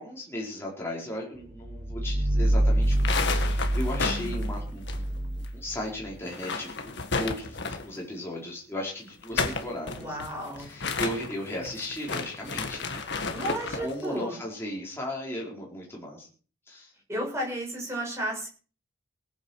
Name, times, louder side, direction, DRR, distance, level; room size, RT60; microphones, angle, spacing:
voice 1, 0.0-10.2 10.6-13.0 13.8-16.3 16.7-16.9, left 1 dB, 10° left, -3 dB, 4.5 m, -36 dB
sound 1, 1.5-6.2, right 1 dB, 45° right, 1.2 m, -26 dB
sound 2, 2.8-5.5 5.7-5.8 6.2-8.0 9.1-13.9, left 4 dB, 55° left, 1.7 m, -32 dB
voice 2, 4.0-4.4 10.0-10.7 13.3-14.4 17.1-18.5, equal, 15° right, -1 dB, 7.5 m, -33 dB
18.5 x 8.9 x 6.5 m, 0.41 s
head